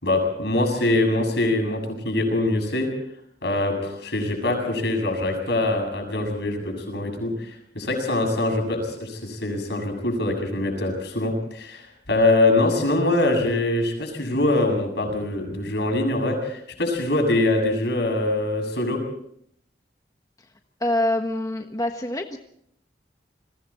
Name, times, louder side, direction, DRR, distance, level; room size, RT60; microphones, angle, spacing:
voice 1, 0.0-2.9 3.4-19.0, left 2 dB, 70° left, 4 dB, 7.3 m, -23 dB
voice 2, 20.8-22.4, left 1 dB, 20° left, 4 dB, 1.3 m, -25 dB
29.5 x 22.0 x 4.3 m, 0.70 s
head